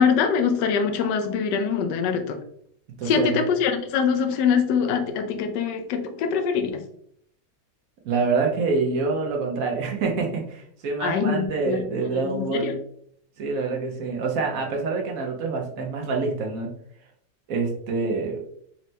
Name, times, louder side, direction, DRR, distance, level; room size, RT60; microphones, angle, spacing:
voice 1, 0.0-2.4 3.0-6.8 11.0-12.8, left 6 dB, 80° left, 6 dB, 1.2 m, -23 dB
voice 2, 3.0-3.4 8.0-12.7 13.4-16.7 17.5-18.4, right 4 dB, 60° right, 0 dB, 1.0 m, -26 dB
4.3 x 3.1 x 2.7 m, 0.67 s
omnidirectional pair, 1.9 m